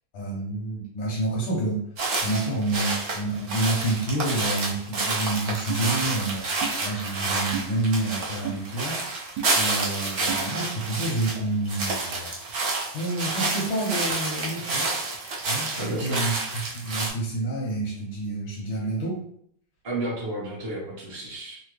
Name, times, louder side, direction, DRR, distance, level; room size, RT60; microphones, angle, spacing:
voice 1, 0.1-1.8 2.2-6.5 6.8-12.3 12.9-14.9 15.5-19.2, right 2 dB, 80° left, -6 dB, 1.7 m, -29 dB
sound 1, 2.0-11.4 11.6-17.1, right 3 dB, 60° right, 0.8 m, -29 dB
sound 2, 5.7-5.8 6.6-6.8 7.5-7.7 8.4-8.6 9.4-9.5 10.3-10.4, right 7 dB, 85° right, 1.3 m, -32 dB
voice 2, 15.8-16.2 19.8-21.6, right 1 dB, 25° right, -5 dB, 0.6 m, -32 dB
3.9 x 2.1 x 3.2 m, 0.65 s
omnidirectional pair, 2.1 m